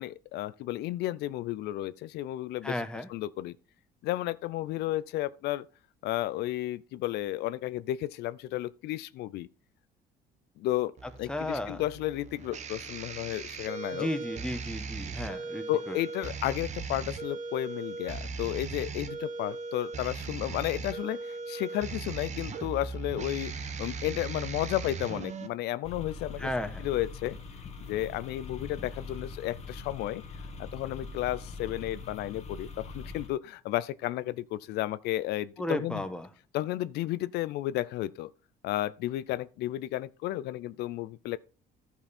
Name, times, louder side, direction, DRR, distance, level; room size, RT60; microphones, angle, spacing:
voice 1, 0.0-2.7 3.1-3.6 4.0-5.7 6.0-9.5 10.6-10.9 11.2-14.1 15.7-26.5 26.8-27.4 27.8-30.2 30.6-36.0 36.5-38.3 38.6-41.4, left 15 dB, 80° left, 0.4 m, -33 dB
voice 2, 2.6-3.1 11.3-11.8 13.9-16.0 26.4-26.9 35.6-36.3, left 1 dB, 5° left, 1.2 m, -34 dB
sound 1, 11.0-25.5, right 4 dB, 45° right, 1.2 m, -38 dB
sound 2, 25.8-33.3, left 3 dB, 40° left, 1.6 m, -42 dB
12.0 x 5.5 x 4.2 m
cardioid pair, 110°, 17 cm